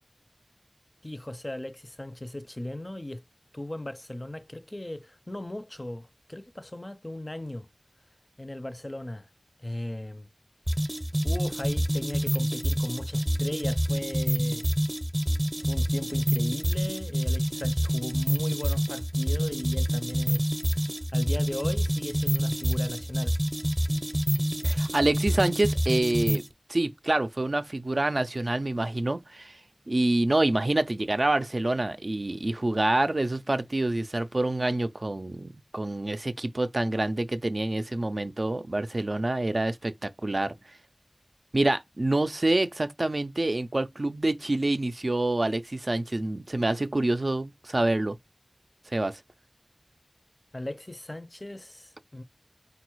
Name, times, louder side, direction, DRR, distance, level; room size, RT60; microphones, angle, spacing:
voice 1, 1.0-3.2 3.5-7.7 8.4-9.3 9.6-10.3 10.9-11.0 11.2-14.7 15.6-20.5 21.1-23.4 50.5-52.2, left 1 dB, 35° left, 0.4 m, -37 dB
sound 1, 10.7-26.5, equal, 15° right, 0.6 m, -27 dB
voice 2, 24.6-26.4 26.7-29.6 29.9-40.5 41.5-48.2 48.9-49.2, right 2 dB, 65° right, 0.4 m, -27 dB
3.9 x 2.3 x 4.5 m
wide cardioid pair, 45°, 0 cm